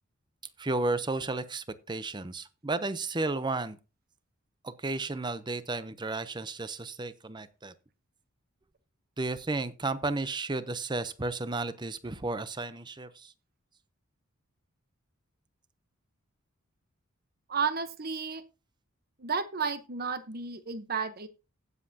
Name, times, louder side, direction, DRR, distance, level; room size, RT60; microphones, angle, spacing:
voice 1, 0.6-3.8 4.6-7.7 9.2-13.3, right 2 dB, 20° right, 0.7 m, -33 dB
voice 2, 17.5-18.4 19.2-21.3, right 5 dB, 45° right, 1.0 m, -32 dB
16.0 x 7.5 x 2.8 m
head